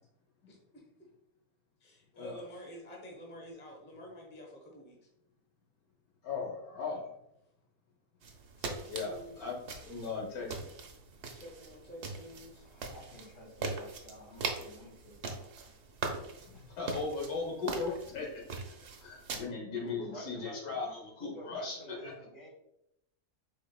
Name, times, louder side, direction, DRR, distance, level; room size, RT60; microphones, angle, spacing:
voice 1, 0.5-1.1 1.8-5.1 8.6-9.5 11.3-12.6, equal, 10° left, 0 dB, 0.7 m, -49 dB
voice 2, 6.2-7.1 8.9-10.7 16.5-18.4 19.0-22.1, left 4 dB, 80° left, -1 dB, 1.5 m, -38 dB
sound 1, 8.2-19.4, right 4 dB, 60° right, 0.8 m, -41 dB
voice 3, 12.6-15.5 19.8-20.6 21.2-22.5, equal, 55° left, -4 dB, 2.0 m, -49 dB
4.8 x 4.4 x 2.3 m, 0.81 s
omnidirectional pair, 1.5 m